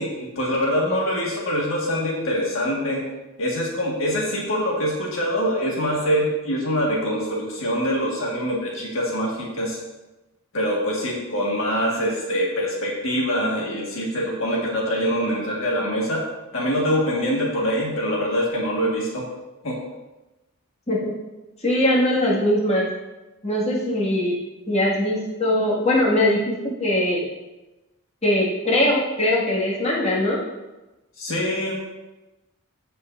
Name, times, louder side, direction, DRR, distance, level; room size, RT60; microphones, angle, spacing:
voice 1, 0.0-3.1 3.4-9.8 10.5-16.3 16.5-19.3 19.6-19.8 31.2-31.8, equal, 65° left, -3 dB, 1.7 m, -24 dB
voice 2, 21.6-22.9 23.4-24.4 24.7-27.3 28.2-30.4, left 1 dB, 30° left, -5 dB, 2.0 m, -21 dB
15.0 x 5.5 x 2.6 m, 1.1 s
head